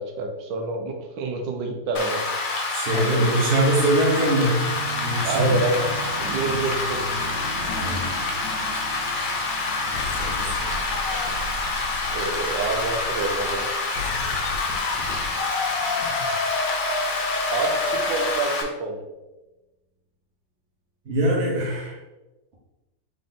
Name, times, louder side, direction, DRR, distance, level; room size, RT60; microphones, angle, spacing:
voice 1, 0.0-2.3 2.9-3.4 5.2-5.9 6.2-7.2 12.1-13.7 17.5-19.0, right 3 dB, 85° right, 3 dB, 1.3 m, -28 dB
Rain, 1.9-18.6, left 3 dB, 60° left, 0.5 m, -27 dB
voice 2, 2.7-4.7 5.0-5.6 7.7-8.1 9.8-10.7 14.0-14.3 21.0-22.0, right 1 dB, 40° right, -3 dB, 1.4 m, -23 dB
sound 1, 4.1-14.2 14.9-15.0, right 3 dB, 65° right, 1.8 m, -37 dB
sound 2, 7.6-8.7 9.3-9.4 9.9-18.4, left 3 dB, 75° left, 1.2 m, -31 dB
3.8 x 3.8 x 3.7 m, 1.1 s
omnidirectional pair, 2.0 m